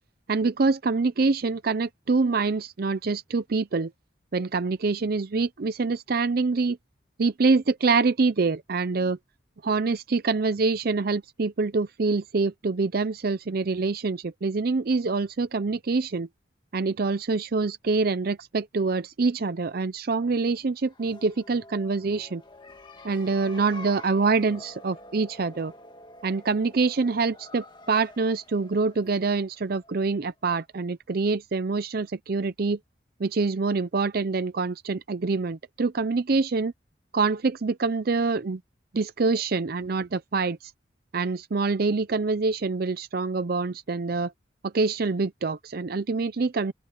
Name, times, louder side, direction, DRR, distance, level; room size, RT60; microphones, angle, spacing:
voice 1, 0.3-3.9 4.3-6.8 7.2-9.2 9.6-16.3 16.7-22.4 23.0-25.7 26.2-32.8 33.2-36.7 37.1-38.6 38.9-40.6 41.1-44.3 44.7-46.7, right 4 dB, 50° right, 0.5 m, -25 dB
sound 1, 20.8-30.3, left 1 dB, 25° left, 2.0 m, -48 dB
open air
head